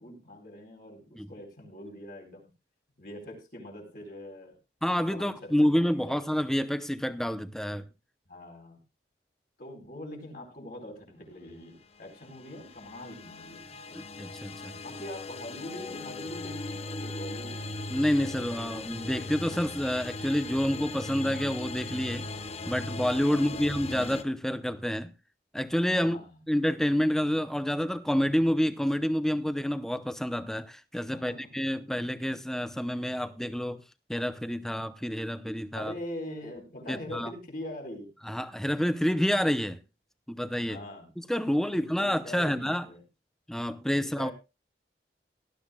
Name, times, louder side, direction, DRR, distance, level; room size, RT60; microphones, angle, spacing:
voice 1, 0.0-2.5 3.0-4.5 5.0-5.5 6.0-6.2 8.3-8.8 9.6-14.0 14.8-17.7 23.3-23.7 25.9-26.3 31.1-31.4 35.7-38.1 40.7-41.1 41.4-43.0 44.2-44.3, left 1 dB, 50° left, 4.3 m, -43 dB
voice 2, 4.8-7.8 13.9-14.7 17.9-22.3 22.7-25.1 25.5-26.2 26.5-33.8 34.1-35.9 36.9-37.3 38.2-39.8 40.3-40.8 41.3-42.9 43.5-44.3, equal, 5° left, 0.7 m, -28 dB
sound 1, 12.0-24.2, left 2 dB, 35° left, 0.7 m, -39 dB
18.5 x 12.0 x 2.3 m
head